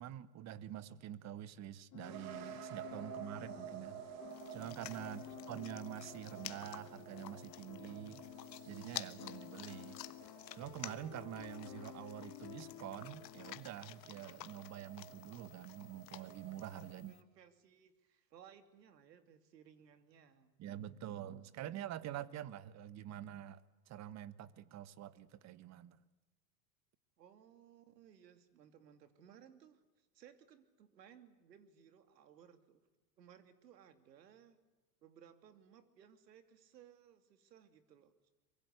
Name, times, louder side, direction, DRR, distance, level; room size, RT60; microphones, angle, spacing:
voice 1, 0.0-4.0 4.5-8.3 8.7-10.0 10.5-17.2 20.6-23.6 23.9-26.0, right 11 dB, 35° right, 1.3 m, -47 dB
sound 1, 1.9-13.6, left 15 dB, 40° left, 1.6 m, -53 dB
sound 2, 2.0-16.9, right 11 dB, 55° right, 3.5 m, -53 dB
sound 3, 4.3-17.2, left 14 dB, 80° left, 1.3 m, -52 dB
voice 2, 5.0-5.4 16.8-20.5 27.2-32.8 33.2-34.6 35.0-38.1, right 9 dB, 80° right, 2.8 m, -62 dB
24.5 x 22.5 x 8.2 m
hypercardioid pair, 110°, 49 cm